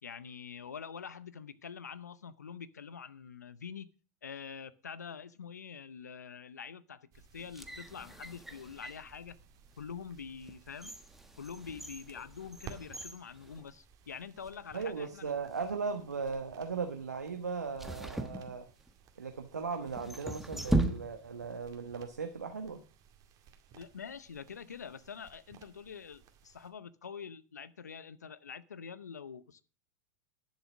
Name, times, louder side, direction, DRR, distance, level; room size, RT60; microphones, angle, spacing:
voice 1, 0.0-3.9 4.2-9.4 9.8-10.9 11.4-15.3 23.7-29.6, left 6 dB, 90° left, 0.7 m, -46 dB
sound 1, 7.1-26.7, right 8 dB, 45° right, 2.1 m, -58 dB
sound 2, 7.3-9.1 9.7-9.8 10.4-14.2 14.5-14.6 15.4-15.8 17.8-19.1 19.9-21.5 21.7-21.8, right 2 dB, 5° right, 1.3 m, -37 dB
voice 2, 14.7-18.7 19.2-22.8, right 5 dB, 90° right, 1.2 m, -37 dB
11.0 x 7.4 x 6.1 m
hypercardioid pair, 90°, 9 cm